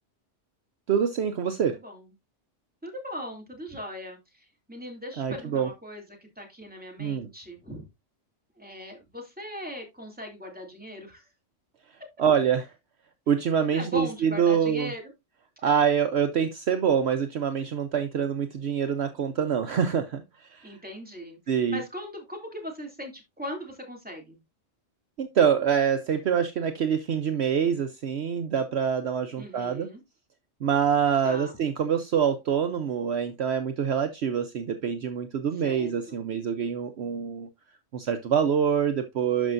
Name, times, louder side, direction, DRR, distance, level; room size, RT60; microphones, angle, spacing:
voice 1, 0.9-1.7 5.2-5.7 7.0-7.3 12.2-12.7 13.3-14.9 15.6-20.2 20.5-20.7 21.5-21.8 25.2-29.9 30.6-37.5 37.9-39.5, right 7 dB, 60° right, 1.0 m, -25 dB
voice 2, 1.6-2.1 2.8-7.9 8.6-11.2 13.7-15.0 15.6-15.7 20.6-21.4 21.7-24.4 29.4-30.0 31.2-31.6 35.5-36.2, equal, 5° right, 2.7 m, -39 dB
12.5 x 5.4 x 2.6 m
omnidirectional pair, 1.3 m